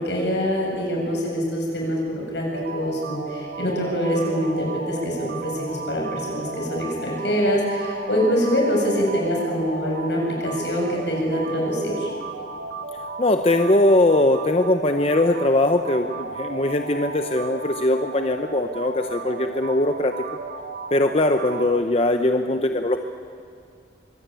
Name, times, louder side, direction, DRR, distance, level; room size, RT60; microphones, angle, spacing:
voice 1, 0.0-2.4 2.7-12.1, equal, 75° left, -2 dB, 7.7 m, -24 dB
sound 1, 2.5-21.8, right 4 dB, 80° right, 1.4 m, -35 dB
voice 2, 13.2-20.1 20.9-23.0, left 1 dB, 35° left, 6 dB, 0.8 m, -20 dB
24.0 x 17.0 x 9.2 m, 2.5 s
head